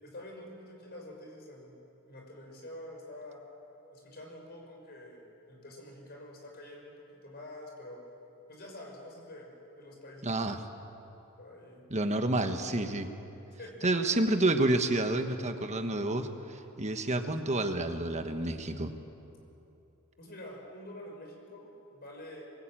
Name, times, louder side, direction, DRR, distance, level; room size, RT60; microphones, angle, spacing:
voice 1, 0.0-1.8 2.0-3.4 3.9-8.0 8.5-10.7 11.4-11.8 13.6-13.9 20.2-22.4, left 1 dB, 45° left, 0 dB, 5.7 m, -47 dB
voice 2, 10.2-10.6 11.9-13.1 13.8-18.9, right 2 dB, 30° right, 6 dB, 1.3 m, -29 dB
23.5 x 21.0 x 9.0 m, 2.9 s
head